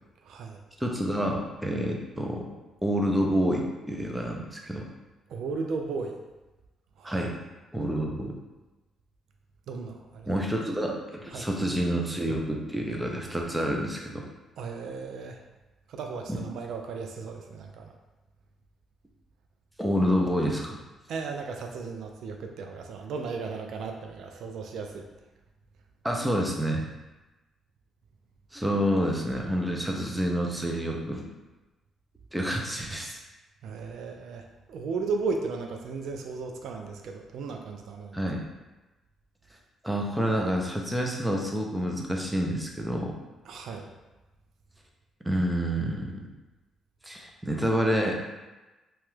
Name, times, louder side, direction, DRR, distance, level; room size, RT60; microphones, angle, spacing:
voice 1, 0.2-0.6 5.3-6.2 7.0-7.3 9.7-10.4 11.3-11.5 14.6-15.4 15.9-17.9 21.1-25.1 33.6-38.2 43.5-43.9, right 4 dB, 75° right, 3 dB, 0.3 m, -35 dB
voice 2, 0.8-2.5 2.8-4.9 7.0-7.3 7.7-8.4 10.3-14.3 16.3-16.4 19.8-20.8 26.0-26.9 28.5-31.3 32.3-33.2 38.1-38.4 39.8-43.2 45.2-46.3 47.0-48.2, equal, 5° right, 0 dB, 0.5 m, -28 dB
2.9 x 2.3 x 3.1 m, 1.1 s
cardioid pair, 90°, 0 cm